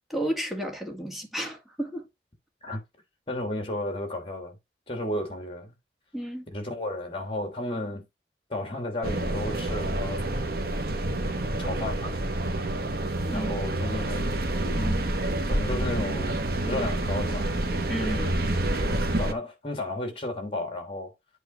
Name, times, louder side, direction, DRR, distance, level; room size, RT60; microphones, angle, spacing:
voice 1, 0.1-2.1 6.1-6.5 13.2-13.5 14.8-15.0 17.9-18.2, equal, ahead, 1.9 m, -32 dB
voice 2, 3.3-4.6 4.9-5.7 6.5-8.1 8.5-10.2 11.6-12.2 13.3-14.3 15.5-17.5 18.0-21.1, left 1 dB, 30° left, 3.0 m, -33 dB
sound 1, 9.0-19.3, right 1 dB, 55° right, 1.3 m, -28 dB
8.2 x 3.7 x 5.9 m
head